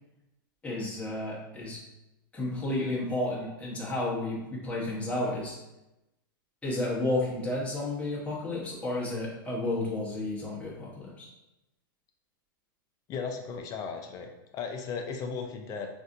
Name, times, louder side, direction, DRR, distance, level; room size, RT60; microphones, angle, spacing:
voice 1, 0.6-1.8 2.3-5.6 6.6-11.3, left 2 dB, 10° left, -6 dB, 1.0 m, -32 dB
voice 2, 13.1-15.9, left 5 dB, 30° left, 4 dB, 0.5 m, -36 dB
4.0 x 2.6 x 2.6 m, 0.96 s
hypercardioid pair, 125°, 12 cm